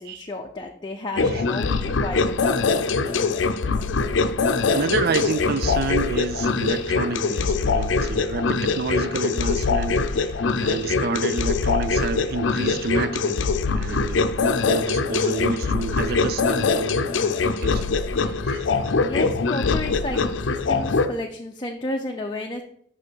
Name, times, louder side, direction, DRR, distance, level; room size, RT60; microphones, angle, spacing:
voice 1, 0.0-3.6 18.9-22.6, left 2 dB, 25° left, 0.5 m, -32 dB
sound 1, 1.2-21.1, left 4 dB, 85° left, 0.5 m, -23 dB
voice 2, 4.7-17.8 18.2-18.7, right 4 dB, 55° right, 0.4 m, -29 dB
5.6 x 5.0 x 6.2 m
head